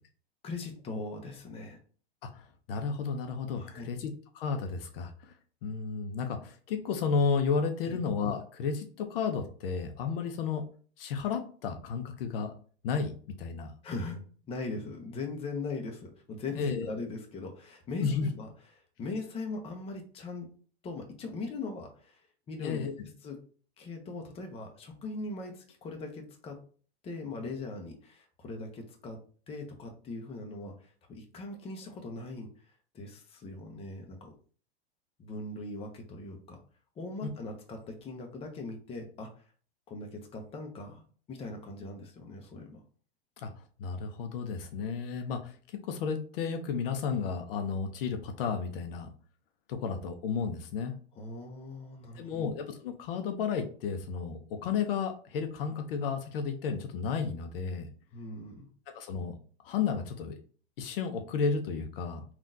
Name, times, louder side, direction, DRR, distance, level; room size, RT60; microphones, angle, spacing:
voice 1, 0.4-1.8 3.6-3.9 7.9-8.0 13.8-18.5 19.0-20.5 20.8-22.2 22.5-23.4 23.8-26.6 27.0-29.2 29.5-32.5 32.9-34.3 35.2-36.6 37.0-39.3 39.9-41.0 41.3-42.8 51.2-52.5 58.1-58.7, left 3 dB, 20° left, 2 dB, 0.7 m, -40 dB
voice 2, 2.2-5.3 5.6-10.6 11.0-12.5 12.8-13.1 13.4-13.7 16.6-16.9 18.0-18.3 22.6-22.9 43.4-43.5 43.8-45.6 45.8-49.1 49.7-50.9 52.2-57.9 58.9-59.3 59.6-60.4 60.8-62.2, left 5 dB, 60° left, 6 dB, 0.6 m, -32 dB
3.6 x 2.4 x 2.6 m, 0.41 s
hypercardioid pair, 115°, 33 cm